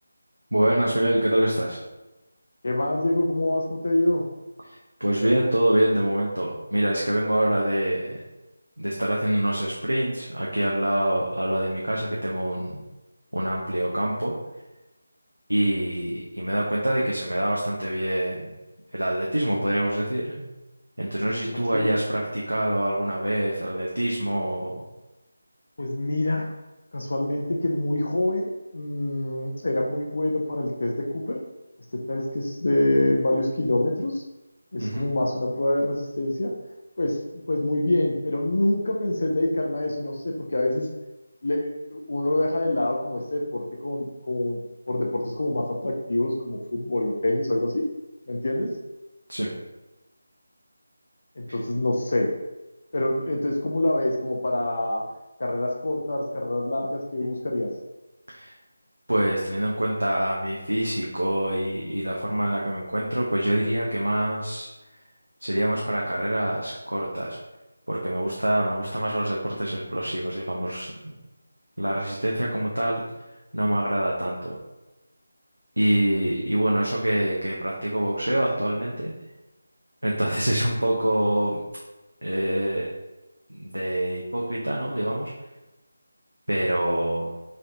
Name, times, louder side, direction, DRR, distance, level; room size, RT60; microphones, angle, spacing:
voice 1, 0.5-1.8 4.7-8.2 8.8-12.8 13.3-14.3 15.5-18.5 18.9-20.5 21.0-24.8 34.8-35.1 49.3-49.5 51.5-51.6 58.3-58.5 59.1-64.7 65.4-67.4 67.9-71.1 71.8-73.0 73.5-74.6 75.8-79.1 80.0-81.6 82.2-82.9 83.5-85.3 86.5-87.3, right 1 dB, 85° right, -3 dB, 0.5 m, -25 dB
voice 2, 2.6-4.2 21.5-22.0 25.8-26.5 26.9-31.4 32.1-34.2 34.7-36.5 37.0-37.2 37.5-40.9 41.4-44.6 44.9-47.8 48.3-48.7 51.4-52.3 52.9-55.0 55.4-57.7, left 1 dB, 55° left, 0 dB, 0.4 m, -26 dB
3.1 x 2.7 x 2.7 m, 1.0 s
figure-of-eight pair, 160°, 0 cm